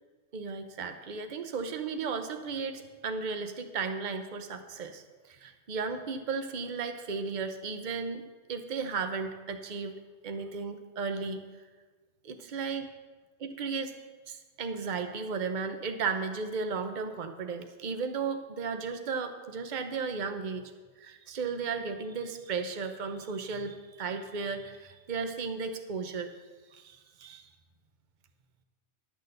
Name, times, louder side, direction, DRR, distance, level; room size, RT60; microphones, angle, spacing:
voice 1, 0.3-8.2 8.5-11.4 12.2-12.9 13.4-14.0 14.3-20.7 21.0-26.3 26.7-27.5, right 5 dB, 45° right, 7 dB, 0.9 m, -35 dB
11.5 x 6.4 x 6.6 m, 1.3 s
omnidirectional pair, 1.3 m